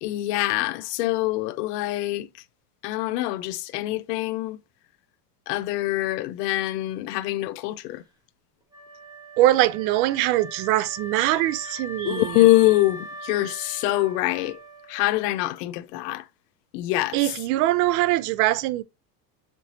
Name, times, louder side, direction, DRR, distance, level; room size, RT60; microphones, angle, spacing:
voice 1, 0.0-2.3 2.8-4.6 5.5-8.0 12.0-14.6 14.9-16.2 16.7-17.2, left 17 dB, 80° left, 0.6 m, -24 dB
Wind instrument woodwind instrument, 8.7-15.7, equal, 10° right, 1.0 m, -41 dB
voice 2, 9.4-12.5 17.1-18.8, right 15 dB, 75° right, 0.6 m, -22 dB
4.5 x 4.1 x 2.7 m
supercardioid pair, 130°, 48 cm